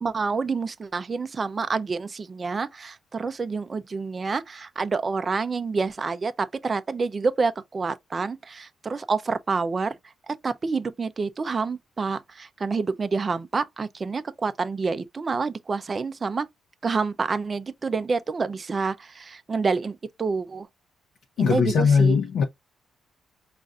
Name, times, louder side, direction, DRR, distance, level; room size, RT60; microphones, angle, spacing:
voice 1, 0.0-10.0 10.3-16.5 16.8-20.7 21.4-22.2, right 4 dB, 25° right, 0.4 m, -28 dB
voice 2, 21.4-22.4, left 6 dB, 65° left, 0.6 m, -20 dB
5.2 x 2.5 x 2.4 m
cardioid pair, 175°, 0 cm